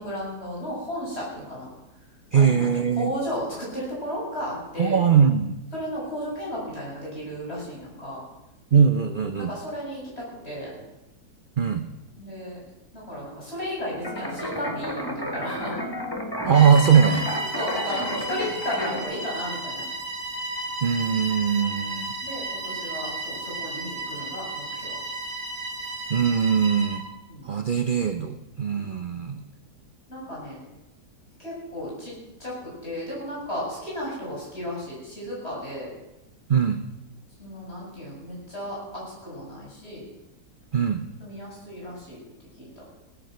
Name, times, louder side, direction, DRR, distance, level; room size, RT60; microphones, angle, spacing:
voice 1, 0.0-1.7 2.3-5.0 5.7-8.2 9.5-10.7 12.2-12.6 12.9-15.8 17.5-19.8 22.2-25.0 27.3-27.5 28.7-28.9 30.1-30.6 31.4-32.1 32.4-35.9 37.4-40.0 41.2-42.2 42.6-42.8, equal, 40° left, -4 dB, 7.8 m, -34 dB
voice 2, 2.3-3.1 4.8-5.6 8.7-9.5 11.6-11.8 16.5-17.3 20.8-22.1 26.1-27.0 27.4-29.4 36.5-36.8 40.7-41.0, right 7 dB, 45° right, 8 dB, 0.7 m, -21 dB
sound 1, 14.0-19.0, equal, 15° left, 1.7 m, -32 dB
Bowed string instrument, 16.5-27.1, right 2 dB, 65° right, 2.7 m, -33 dB
17.0 x 10.0 x 7.8 m, 0.95 s
omnidirectional pair, 1.7 m